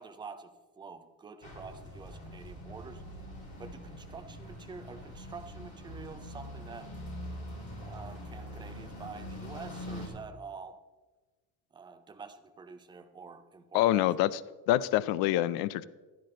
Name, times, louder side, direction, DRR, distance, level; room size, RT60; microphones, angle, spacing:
voice 1, 0.0-3.0 3.6-6.9 7.7-10.8 11.7-14.1, right 5 dB, 15° right, 8 dB, 0.5 m, -47 dB
sound 1, 1.4-10.1, left 1 dB, 20° left, 4.0 m, -43 dB
voice 2, 13.7-14.3 14.7-15.9, left 14 dB, 80° left, 17 dB, 0.6 m, -26 dB
12.0 x 10.5 x 3.8 m, 1.2 s
cardioid pair, 170°, 36 cm